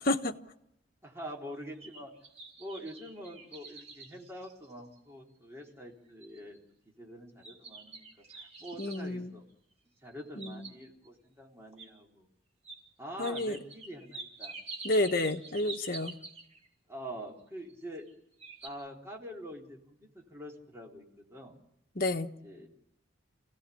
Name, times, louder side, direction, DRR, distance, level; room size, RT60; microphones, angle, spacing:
voice 1, 0.1-0.4 8.8-9.3 10.4-10.6 13.2-13.6 14.8-16.1 21.9-22.3, left 2 dB, 50° left, 1.3 m, -30 dB
voice 2, 1.0-2.1 2.6-6.6 6.9-9.4 10.0-12.3 13.0-14.5 16.9-18.1 18.6-21.6 22.4-22.7, equal, 15° right, 3.8 m, -45 dB
sound 1, 1.5-5.1 5.6-5.7 6.2-6.6 7.4-9.1 10.1-11.1 11.8-11.9 12.6-12.8 13.2-16.7 17.7-18.1 18.4-18.7, right 4 dB, 35° right, 3.6 m, -47 dB
28.0 x 17.0 x 8.5 m
head